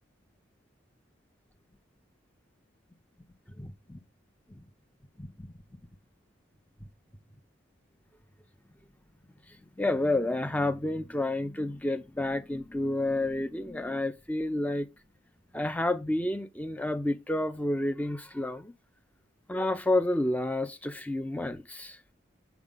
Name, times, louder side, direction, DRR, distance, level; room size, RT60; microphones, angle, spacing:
voice 1, 3.6-4.0 5.2-5.5 9.8-14.9 15.5-18.7 19.5-22.0, left 1 dB, 10° left, 0.5 m, -30 dB
7.0 x 5.3 x 3.7 m
head